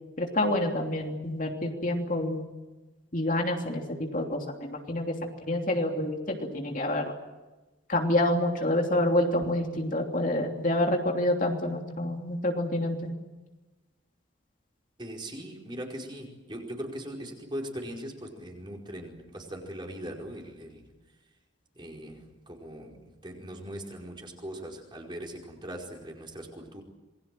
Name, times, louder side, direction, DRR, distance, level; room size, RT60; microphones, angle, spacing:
voice 1, 0.2-2.4 3.1-5.1 5.5-7.1 7.9-13.1, left 1 dB, 45° left, 2 dB, 3.1 m, -27 dB
voice 2, 15.0-20.8 21.7-22.9 23.2-26.8, equal, 25° right, 0 dB, 5.0 m, -40 dB
27.5 x 21.5 x 7.7 m, 1.1 s
head